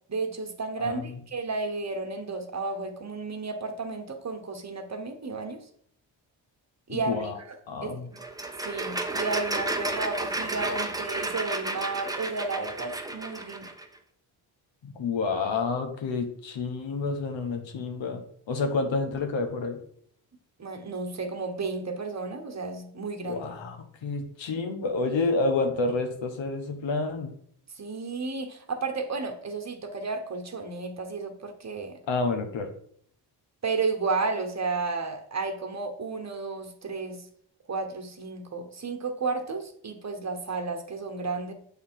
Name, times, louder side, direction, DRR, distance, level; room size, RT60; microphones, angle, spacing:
voice 1, 0.1-5.6 6.9-7.3 7.8-8.2 8.6-13.7 20.6-23.4 27.8-32.0 33.6-37.2 37.7-41.5, right 4 dB, 35° right, 4 dB, 1.2 m, -32 dB
voice 2, 0.8-1.2 6.9-7.4 7.7-8.1 14.8-19.8 23.2-27.3 32.1-32.7, left 3 dB, 70° left, 5 dB, 1.2 m, -29 dB
sound 1, 8.2-13.8, right 2 dB, 10° right, 0.7 m, -32 dB
7.0 x 3.4 x 4.5 m, 0.64 s
supercardioid pair, 50°, 47 cm